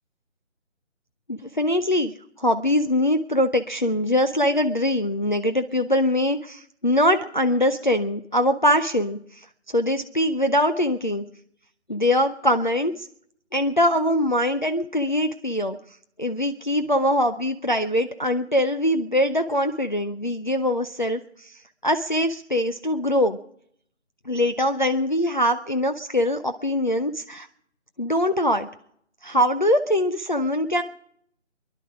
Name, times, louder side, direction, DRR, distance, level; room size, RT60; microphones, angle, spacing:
voice 1, 1.3-11.2 11.9-13.1 13.5-15.8 16.2-21.6 21.8-23.4 24.3-27.5 28.0-28.7 29.2-30.8, left 1 dB, 40° left, 6 dB, 0.5 m, -23 dB
23.5 x 11.0 x 4.8 m, 0.68 s
figure-of-eight pair, 170°, 38 cm